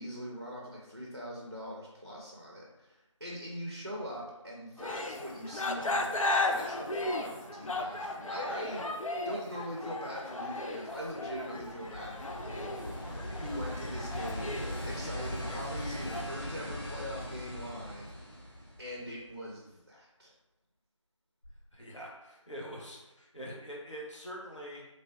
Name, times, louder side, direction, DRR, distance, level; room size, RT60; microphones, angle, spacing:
voice 1, 0.0-18.4 18.8-20.3, equal, 35° right, -4 dB, 0.5 m, -42 dB
sound 1, 4.8-16.2, left 2 dB, 85° left, 0.4 m, -36 dB
sound 2, 10.9-19.3 21.4-21.5, equal, 40° left, 1.0 m, -40 dB
voice 2, 21.7-24.8, equal, 65° left, -3 dB, 1.0 m, -44 dB
3.2 x 2.5 x 2.6 m, 0.98 s
figure-of-eight pair, 175°, 17 cm